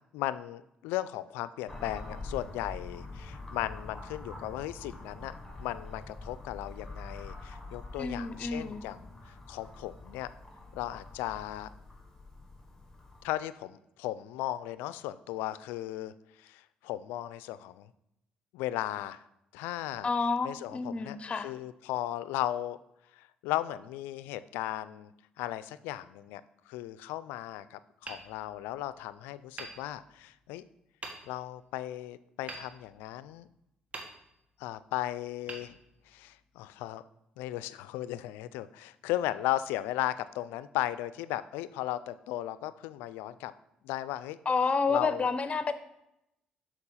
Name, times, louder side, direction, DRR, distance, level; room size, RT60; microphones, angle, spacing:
voice 1, 0.1-5.3 5.6-10.3 10.7-11.7 13.2-16.1 16.4-17.9 18.5-19.2 19.5-20.1 20.4-22.8 23.1-25.1 25.4-30.6 31.3-33.5 34.6-35.8 36.1-37.0 37.4-43.5 43.8-44.4 44.9-45.3, left 14 dB, 85° left, 15 dB, 0.3 m, -36 dB
sound 1, 1.7-13.3, left 2 dB, 15° left, 1.4 m, -45 dB
voice 2, 8.0-8.8 20.0-21.5 44.5-45.7, left 4 dB, 35° left, 12 dB, 0.7 m, -29 dB
Hammer, 28.0-29.0 29.5-30.5 31.0-31.6 32.5-33.4 33.9-34.7 35.4-36.4, right 2 dB, 40° right, 1.5 m, -46 dB
6.7 x 4.5 x 5.5 m, 0.82 s
supercardioid pair, 60°, 3 cm